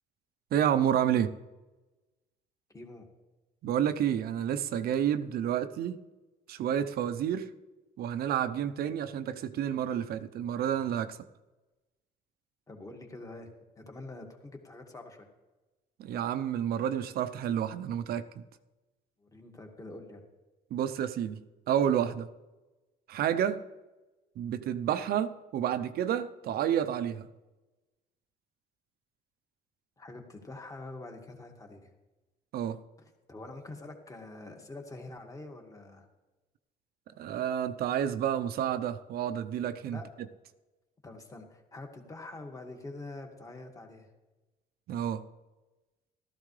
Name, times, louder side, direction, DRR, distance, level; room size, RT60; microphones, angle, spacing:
voice 1, 0.5-1.3 3.6-6.0 6.5-7.5 8.0-11.2 16.0-18.2 20.7-22.3 23.1-23.6 24.4-27.3 32.5-32.8 37.2-40.0 44.9-45.2, right 9 dB, 65° right, 11 dB, 0.7 m, -30 dB
voice 2, 2.7-3.1 12.7-13.5 13.8-15.3 19.2-20.2 30.0-31.9 33.3-36.1 39.9-40.1 41.0-44.1, left 2 dB, 20° left, 3 dB, 1.9 m, -45 dB
15.0 x 13.5 x 3.3 m, 1.1 s
cardioid pair, 110°, 17 cm